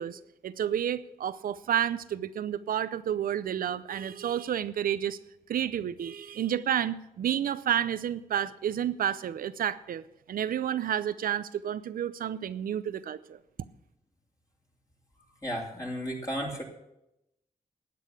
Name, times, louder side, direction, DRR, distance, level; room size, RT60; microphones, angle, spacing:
voice 1, 0.0-5.2 5.5-10.0 10.3-13.4, right 10 dB, 85° right, 15 dB, 0.6 m, -30 dB
voice 2, 15.4-16.6, equal, 25° left, -2 dB, 3.0 m, -33 dB
12.0 x 8.5 x 6.7 m, 0.87 s
cardioid pair, 75°, 14 cm